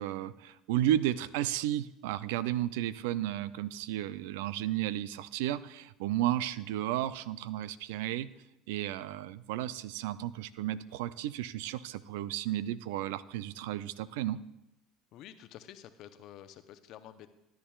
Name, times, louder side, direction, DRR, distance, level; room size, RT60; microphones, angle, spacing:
voice 1, 0.0-8.3 8.7-14.4, right 13 dB, 75° right, 16 dB, 0.4 m, -33 dB
voice 2, 15.1-17.3, left 11 dB, 60° left, 10 dB, 0.7 m, -50 dB
13.5 x 10.5 x 2.4 m, 0.92 s
hypercardioid pair, 75°, 0 cm